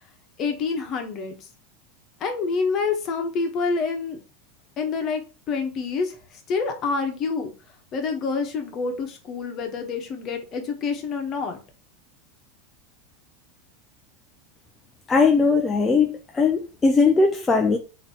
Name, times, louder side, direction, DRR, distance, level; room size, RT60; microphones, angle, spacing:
voice 1, 0.4-1.5 2.2-4.2 4.8-5.2 5.5-7.5 7.9-11.6, left 4 dB, 45° left, 1.3 m, -27 dB
voice 2, 15.1-17.8, left 4 dB, 20° left, 0.5 m, -19 dB
3.9 x 2.9 x 4.3 m
hypercardioid pair, 95°, 0 cm